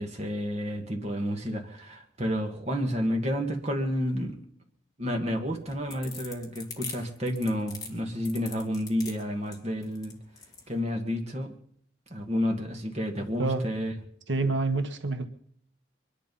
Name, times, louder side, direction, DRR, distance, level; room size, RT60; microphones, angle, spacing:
voice 1, 0.0-4.4 5.0-10.2 10.7-11.5 12.1-13.9, equal, 35° right, 3 dB, 1.9 m, -30 dB
sound 1, 5.5-10.7, left 5 dB, 20° left, 2.2 m, -42 dB
voice 2, 14.3-15.3, right 3 dB, 75° right, 8 dB, 1.3 m, -27 dB
23.5 x 11.0 x 5.5 m, 0.66 s
head